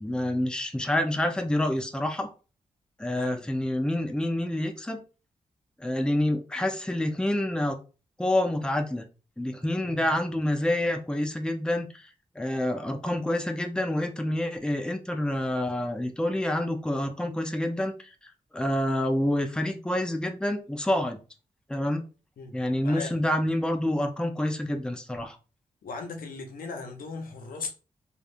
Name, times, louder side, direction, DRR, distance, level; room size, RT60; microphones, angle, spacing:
voice 1, 0.0-2.3 3.0-5.0 5.8-7.8 8.2-9.1 9.4-12.1 12.4-18.1 18.5-21.2 21.7-22.0 22.5-25.4, left 1 dB, 5° left, 0.6 m, -27 dB
voice 2, 9.8-10.2 22.4-22.5 22.8-23.2 25.8-27.7, left 4 dB, 75° left, 0.7 m, -38 dB
3.2 x 2.4 x 2.6 m
supercardioid pair, 40°, 15 cm